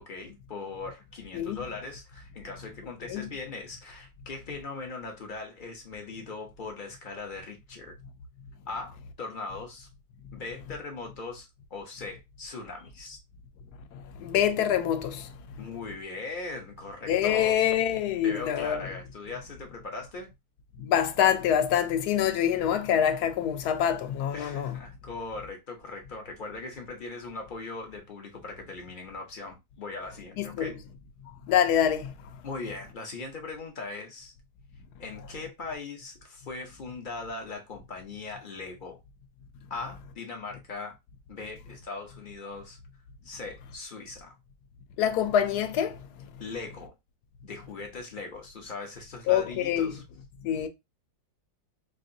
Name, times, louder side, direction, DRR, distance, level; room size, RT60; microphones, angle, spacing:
voice 1, 0.0-7.9 8.7-9.9 10.3-13.2 15.6-17.6 18.2-20.3 24.3-30.8 32.4-34.3 35.0-39.0 39.7-41.0 41.3-42.8 43.2-44.4 46.4-46.9 47.4-50.0, left 3 dB, 45° left, 0.6 m, -39 dB
voice 2, 13.9-15.3 17.1-18.8 20.8-24.8 30.4-30.8 31.5-32.1 45.0-46.0 49.3-49.9 50.4-50.7, left 9 dB, 75° left, 1.1 m, -25 dB
4.7 x 2.5 x 2.6 m
omnidirectional pair, 1.9 m